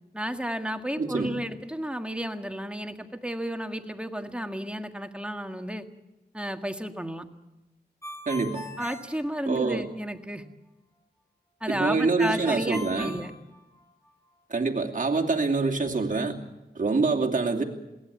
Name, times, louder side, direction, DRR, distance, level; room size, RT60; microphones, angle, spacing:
voice 1, 0.1-5.9 6.3-7.3 8.8-10.4 11.6-13.3, equal, 5° right, 6 dB, 1.8 m, -32 dB
voice 2, 1.0-1.3 8.3-8.6 9.5-9.8 11.7-13.1 14.5-16.4 16.7-17.6, right 3 dB, 50° right, 0 dB, 2.8 m, -25 dB
Ringtone, 8.0-9.9 12.2-14.1, left 1 dB, 15° left, 6.2 m, -40 dB
22.0 x 17.0 x 8.3 m, 1.0 s
cardioid pair, 55°, 18 cm